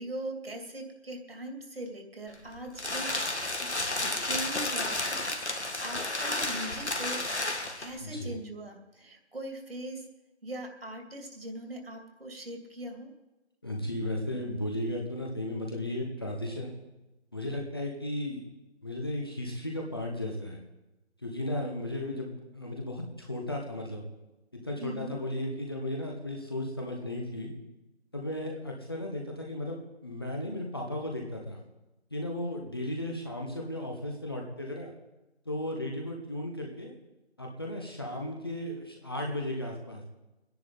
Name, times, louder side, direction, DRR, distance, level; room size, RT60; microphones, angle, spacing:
voice 1, 0.0-3.1 3.6-3.7 4.0-7.2 7.8-10.0 10.4-13.1 24.8-25.2, right 1 dB, 60° right, 3 dB, 2.6 m, -40 dB
sound 1, 2.3-8.0, left 2 dB, 80° left, 2.0 m, -32 dB
voice 2, 8.0-8.3 13.6-16.7 17.3-18.4 18.8-20.6 21.2-24.0 24.5-27.5 28.1-31.6 32.1-34.9 35.4-36.9 37.4-40.0, left 1 dB, 20° left, 0 dB, 1.0 m, -35 dB
23.0 x 10.5 x 4.0 m, 1.1 s
figure-of-eight pair, 165°, 34 cm